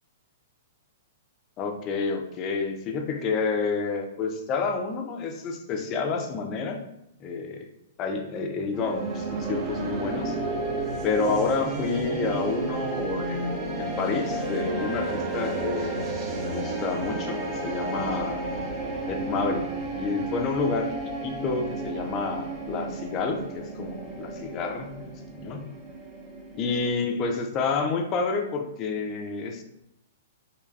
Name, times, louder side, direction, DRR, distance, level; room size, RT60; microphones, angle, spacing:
voice 1, 1.6-6.8 7.2-7.7 8.0-10.4 11.0-16.1 16.4-18.4 19.1-19.7 20.0-20.9 21.2-25.7 26.5-29.6, left 4 dB, 30° left, 4 dB, 0.4 m, -29 dB
sound 1, 8.7-26.9, right 2 dB, 30° right, 0.5 m, -32 dB
3.3 x 2.3 x 2.3 m, 0.81 s
hypercardioid pair, 130°, 0 cm